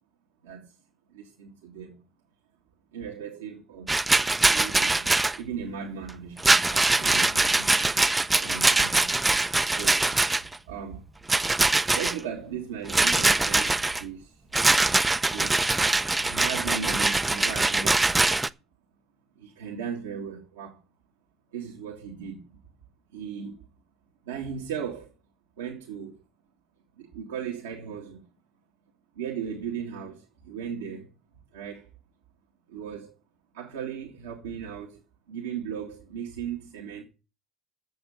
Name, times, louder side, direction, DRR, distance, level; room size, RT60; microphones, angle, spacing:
voice 1, 1.1-2.0 2.9-4.0 4.5-7.9 8.4-9.1 9.4-10.1 10.7-11.1 11.9-14.4 15.1-15.6 16.2-18.4 19.4-20.8 21.5-22.6 23.1-23.7 24.2-25.1 25.6-26.2 27.0-28.2 29.2-31.1 31.5-31.9 32.7-33.1 33.5-35.0 35.3-37.0, right 7 dB, 90° right, 2.1 m, -37 dB
Rattle, 3.9-5.4 6.4-10.6 11.3-12.2 12.9-14.0 14.5-18.5, right 2 dB, 15° right, 0.6 m, -23 dB
7.9 x 7.2 x 7.9 m
hypercardioid pair, 70°, 0 cm